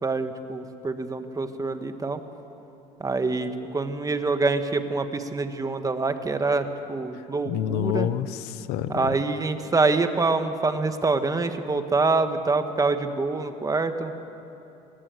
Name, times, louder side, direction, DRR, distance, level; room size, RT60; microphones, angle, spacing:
voice 1, 0.0-2.2 3.0-8.1 8.9-14.1, right 3 dB, 20° right, 8 dB, 1.6 m, -25 dB
voice 2, 7.4-9.2, left 12 dB, 80° left, 15 dB, 0.8 m, -28 dB
26.0 x 18.5 x 7.9 m, 2.9 s
supercardioid pair, 100°, 16 cm